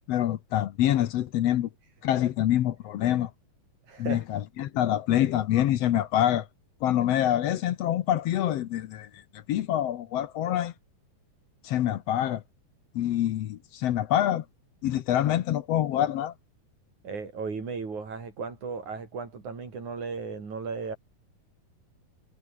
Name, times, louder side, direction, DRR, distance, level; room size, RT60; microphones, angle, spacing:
voice 1, 0.1-1.7 2.0-3.3 4.0-6.5 6.8-10.7 11.6-12.4 12.9-14.4 14.8-16.3, left 12 dB, 70° left, 1.6 m, -26 dB
voice 2, 3.9-4.2 17.0-21.0, right 4 dB, 60° right, 6.5 m, -35 dB
omnidirectional pair, 3.9 m